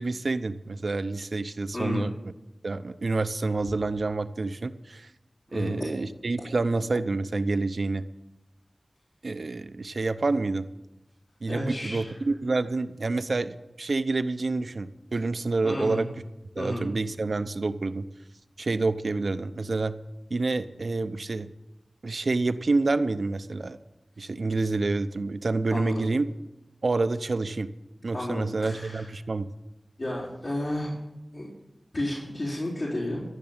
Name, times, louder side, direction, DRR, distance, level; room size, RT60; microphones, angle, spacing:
voice 1, 0.0-2.1 2.6-5.1 5.5-8.1 9.2-10.7 11.4-16.1 16.6-18.1 18.6-19.9 20.3-21.5 22.0-23.8 24.2-26.3 26.8-27.7 28.0-29.5, right 3 dB, 75° right, 11 dB, 0.7 m, -28 dB
voice 2, 1.7-2.1 5.5-5.8 11.4-12.2 15.6-16.0 16.6-16.9 25.7-26.1 28.1-29.1 30.0-30.9 31.3-31.5 31.9-33.2, left 1 dB, 70° left, -8 dB, 4.0 m, -32 dB
14.5 x 6.8 x 8.7 m, 0.95 s
wide cardioid pair, 60°, 0 cm